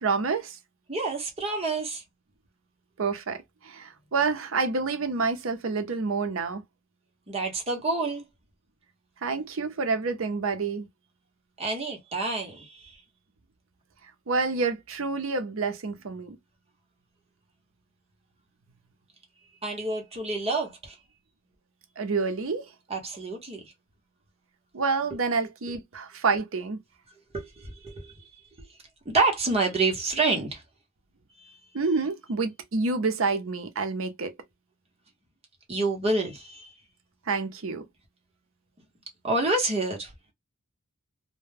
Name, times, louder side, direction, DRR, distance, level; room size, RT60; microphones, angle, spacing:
voice 1, 0.0-0.6 3.0-6.6 9.2-10.9 14.3-16.4 22.0-22.7 24.7-26.8 31.7-34.3 37.3-37.9, right 4 dB, 75° right, 0.6 m, -28 dB
voice 2, 0.9-2.0 7.3-8.2 11.6-13.0 19.6-21.0 22.9-23.6 27.3-28.2 29.1-30.6 31.4-31.6 35.7-36.7 39.2-40.1, right 3 dB, 30° right, 0.8 m, -28 dB
2.1 x 2.1 x 3.2 m
head